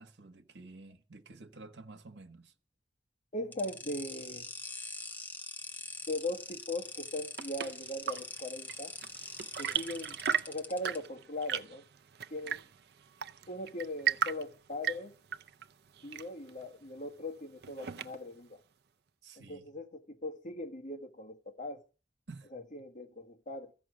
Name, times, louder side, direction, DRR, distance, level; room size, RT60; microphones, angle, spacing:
voice 1, 0.0-2.5 19.2-19.7 22.3-22.5, right 3 dB, 80° right, 1.2 m, -51 dB
voice 2, 3.3-4.5 6.1-8.9 9.6-10.2 10.5-11.9 12.3-12.6 13.5-15.1 16.0-18.6 19.4-21.8 22.5-23.7, left 1 dB, 45° left, 1.7 m, -39 dB
sound 1, 3.5-11.0, left 3 dB, 10° left, 1.1 m, -44 dB
Chirp tweet / Engine / Tap, 6.9-18.4, right 8 dB, 60° right, 0.6 m, -38 dB
14.5 x 6.0 x 9.4 m
head